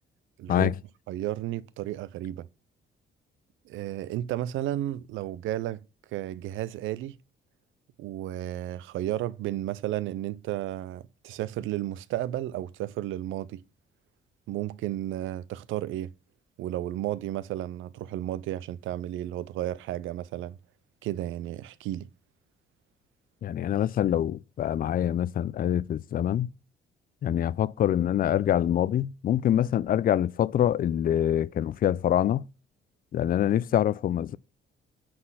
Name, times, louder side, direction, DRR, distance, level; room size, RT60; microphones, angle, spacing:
voice 1, 0.4-0.7 1.1-2.5 3.6-5.8 6.1-7.2 8.0-13.6 14.5-16.1 16.6-20.6 21.0-22.1, right 13 dB, 85° right, 0.5 m, -33 dB
voice 2, 23.4-26.5 27.2-32.4 33.1-34.4, left 11 dB, 45° left, 0.4 m, -25 dB
7.7 x 4.2 x 5.5 m
cardioid pair, 90°, 20 cm